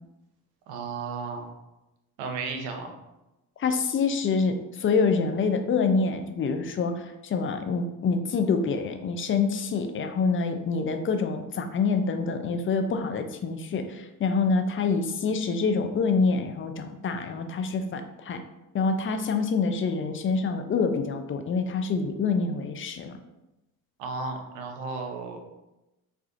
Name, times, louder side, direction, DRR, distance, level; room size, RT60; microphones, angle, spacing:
voice 1, 0.7-1.5 2.2-2.9 24.0-25.4, right 4 dB, 85° right, 4 dB, 0.7 m, -34 dB
voice 2, 3.6-18.4 18.7-23.1, left 4 dB, 30° left, 7 dB, 0.4 m, -26 dB
4.2 x 2.3 x 2.5 m, 0.96 s
supercardioid pair, 60°, 43 cm